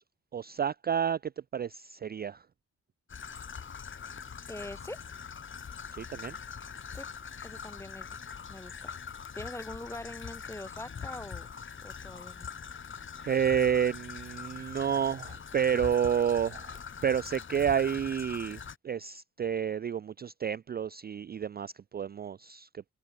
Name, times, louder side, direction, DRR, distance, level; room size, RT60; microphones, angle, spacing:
voice 1, 0.3-2.5 5.9-6.4 13.2-22.9, right 8 dB, 35° right, 0.4 m, -30 dB
Traffic noise roadway noise / Trickle dribble, 3.1-18.8, left 6 dB, 40° left, 1.4 m, -43 dB
voice 2, 4.5-5.0 6.9-7.1 7.4-8.1 8.5-9.0 9.3-11.5 11.8-12.5, left 1 dB, 10° left, 1.0 m, -43 dB
cardioid pair, 110°, 30 cm